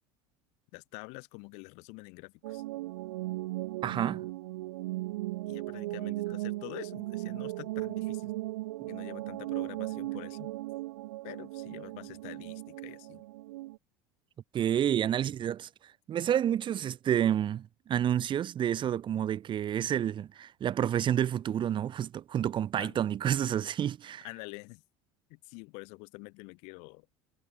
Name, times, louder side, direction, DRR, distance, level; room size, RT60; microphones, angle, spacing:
voice 1, 0.7-2.6 5.5-8.3 8.9-10.5 11.2-13.2 22.8-23.0 24.2-24.8 25.3-27.1, left 32 dB, 70° left, 5.6 m, -46 dB
sound 1, 2.4-13.8, right 18 dB, 85° right, 0.6 m, -37 dB
voice 2, 3.8-4.3 8.8-8.9 14.5-15.7 16.1-24.2, right 10 dB, 40° right, 1.8 m, -29 dB
supercardioid pair, 95°, 13 cm